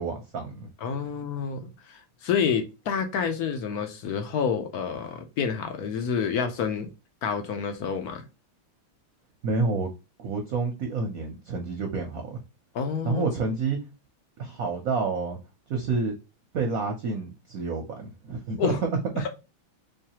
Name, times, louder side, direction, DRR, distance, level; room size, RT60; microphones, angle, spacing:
voice 1, 0.0-0.7 9.4-9.9 10.2-12.4 13.0-13.8 14.4-15.4 15.7-16.1 16.5-18.9, right 4 dB, 65° right, 0.9 m, -29 dB
voice 2, 0.8-6.9 7.2-8.2 12.7-13.3 18.6-18.8, left 6 dB, 70° left, 0.9 m, -28 dB
3.5 x 3.2 x 2.8 m
omnidirectional pair, 2.2 m